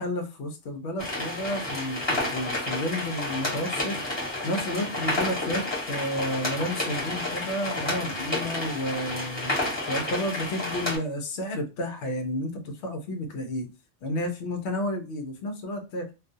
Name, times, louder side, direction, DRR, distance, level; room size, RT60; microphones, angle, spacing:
voice 1, 0.0-4.2 4.4-9.5 9.9-13.7 14.0-16.1, left 1 dB, 70° left, 5 dB, 0.9 m, -31 dB
sound 1, 1.0-11.0, left 1 dB, 25° left, 1.0 m, -30 dB
2.3 x 2.3 x 2.5 m, 0.29 s
omnidirectional pair, 1.2 m